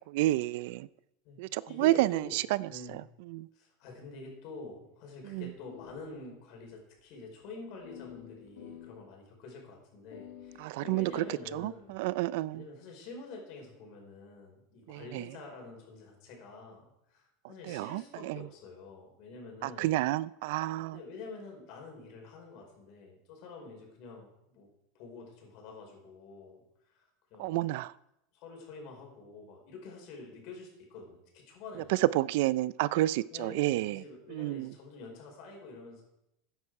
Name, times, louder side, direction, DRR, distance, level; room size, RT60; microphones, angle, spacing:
voice 1, 0.1-0.9 1.4-2.4 3.3-3.5 5.3-5.4 10.6-11.2 11.5-12.6 14.9-15.2 17.7-18.0 18.3-18.4 19.6-21.0 27.4-27.9 32.1-34.0 34.3-34.7, right 17 dB, 65° right, 0.3 m, -30 dB
voice 2, 1.7-3.0 3.5-12.0 12.5-19.9 20.9-24.7 24.9-26.6 26.9-27.7 28.3-32.0 33.3-36.0, left 3 dB, 50° left, 4.7 m, -47 dB
sound 1, 5.3-6.6 6.9-7.0 7.8-9.1 10.1-12.1, left 10 dB, 85° left, 1.6 m, -50 dB
14.0 x 9.8 x 4.8 m
supercardioid pair, 160°, 0 cm